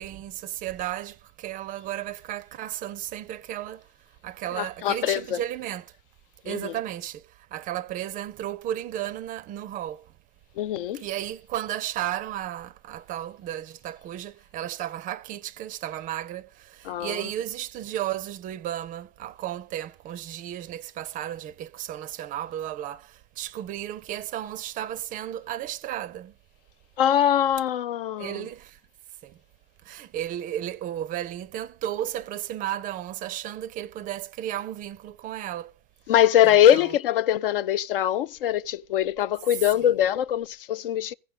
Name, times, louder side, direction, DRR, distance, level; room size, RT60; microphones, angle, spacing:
voice 1, 0.0-3.9 4.2-5.9 6.4-10.1 10.9-26.4 28.2-28.8 29.2-29.4 29.8-35.7 36.4-36.9 39.8-39.9, right 12 dB, 30° right, 0.4 m, -34 dB
voice 2, 4.5-5.4 6.5-6.7 10.6-11.0 16.8-17.2 27.0-28.5 36.1-41.1, left 11 dB, 65° left, 0.4 m, -22 dB
15.5 x 5.4 x 3.9 m
figure-of-eight pair, 90°, 30 cm